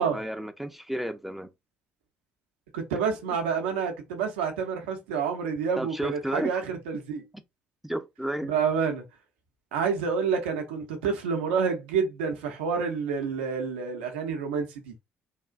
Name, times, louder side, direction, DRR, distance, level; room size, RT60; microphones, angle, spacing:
voice 1, 0.0-1.5 5.8-6.6 7.8-8.5, right 1 dB, 5° right, 0.4 m, -32 dB
voice 2, 2.7-7.2 8.4-9.0 9.7-14.9, right 6 dB, 80° right, 0.6 m, -28 dB
3.4 x 2.4 x 2.3 m
hypercardioid pair, 50°, 6 cm